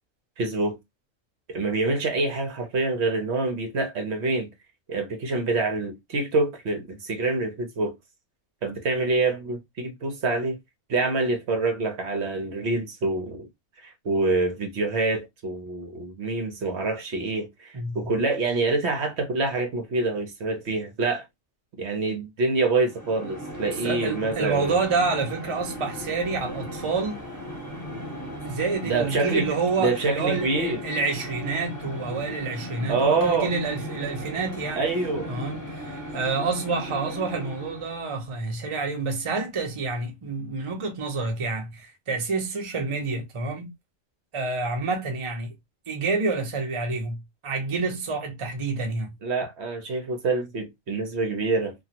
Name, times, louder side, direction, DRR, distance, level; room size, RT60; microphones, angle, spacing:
voice 1, 0.4-0.8 1.5-4.5 4.9-8.0 8.6-10.6 10.9-13.5 13.8-21.2 21.8-24.8 28.8-29.5 29.8-30.8 32.9-33.5 34.8-35.3 49.2-51.7, right 3 dB, 60° right, 0.9 m, -26 dB
voice 2, 17.7-18.1 23.8-27.2 28.4-34.8 35.3-43.7 44.3-45.5 45.9-49.1, right 4 dB, 30° right, 0.6 m, -28 dB
sound 1, 22.8-38.1, equal, 15° left, 1.0 m, -37 dB
3.0 x 2.3 x 2.8 m
omnidirectional pair, 1.3 m